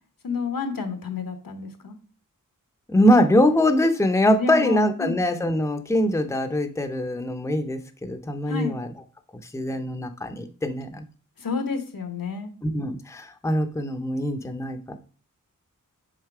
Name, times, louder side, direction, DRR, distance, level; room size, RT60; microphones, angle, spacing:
voice 1, 0.2-1.9 4.4-5.1 8.5-8.7 11.4-12.5, left 5 dB, 85° left, 8 dB, 1.2 m, -29 dB
voice 2, 2.9-8.9 9.5-11.0 12.6-15.0, left 1 dB, 10° left, 8 dB, 0.6 m, -23 dB
6.5 x 4.0 x 4.8 m, 0.39 s
wide cardioid pair, 85°, 33 cm